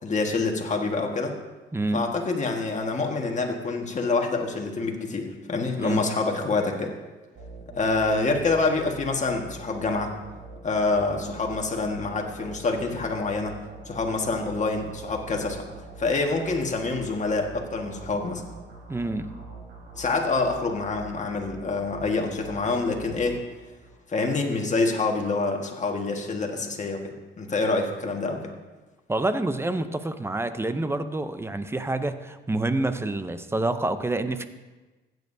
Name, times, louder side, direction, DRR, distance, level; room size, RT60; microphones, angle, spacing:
voice 1, 0.0-1.3 1.9-6.9 7.7-10.1 10.6-13.6 13.9-15.7 16.0-18.4 19.9-23.4 24.1-28.4, left 3 dB, 35° left, 2 dB, 1.6 m, -26 dB
voice 2, 1.7-2.0 5.8-6.0 18.9-19.3 29.1-34.5, right 2 dB, 10° right, 10 dB, 0.7 m, -27 dB
sound 1, 7.4-24.0, right 2 dB, 55° right, 4.1 m, -44 dB
15.5 x 9.2 x 2.7 m, 1.2 s
cardioid pair, 90°, 20 cm